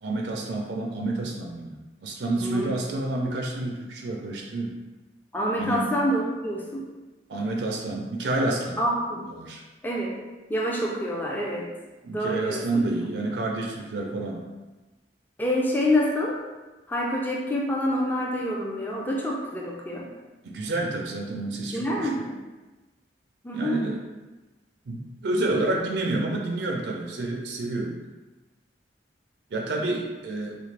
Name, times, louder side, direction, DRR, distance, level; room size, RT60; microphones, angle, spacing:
voice 1, 0.0-4.8 5.6-5.9 7.3-8.8 9.3-9.6 12.0-14.4 20.4-22.1 23.5-24.0 24.9-27.9 29.5-30.6, right 2 dB, 70° right, 0 dB, 0.4 m, -29 dB
voice 2, 2.4-2.7 5.3-6.9 8.8-9.3 9.8-10.2 10.5-11.7 12.1-12.8 15.4-16.5 16.9-20.1 21.7-22.4 23.4-23.8, equal, 10° left, -2 dB, 0.3 m, -27 dB
3.5 x 2.4 x 3.2 m, 1.2 s
head